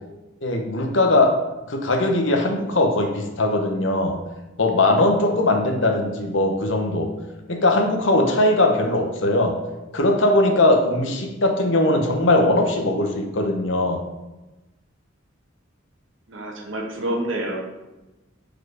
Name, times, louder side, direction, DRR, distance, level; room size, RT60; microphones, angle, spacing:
voice 1, 0.4-1.4 1.7-4.2 4.6-7.1 7.5-9.5 9.9-14.0, left 2 dB, 70° left, 4 dB, 0.9 m, -20 dB
voice 2, 16.3-17.6, right 1 dB, 80° right, 0 dB, 1.3 m, -28 dB
4.7 x 4.4 x 4.7 m, 1.1 s
head